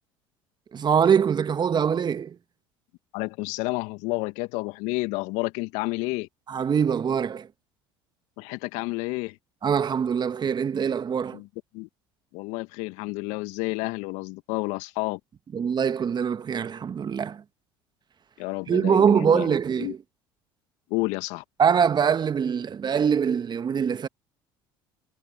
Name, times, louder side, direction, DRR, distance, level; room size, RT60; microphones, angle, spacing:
voice 1, 0.7-2.4 6.5-7.5 9.6-11.4 15.5-17.4 18.7-20.0 21.6-24.1, right 7 dB, 35° right, 1.5 m, -23 dB
voice 2, 3.1-6.3 8.4-9.4 11.3-11.5 11.7-11.9 12.3-15.2 18.4-19.5 19.8-19.9 20.9-21.4, left 24 dB, 65° left, 2.0 m, -30 dB
hypercardioid pair, 65°, 13 cm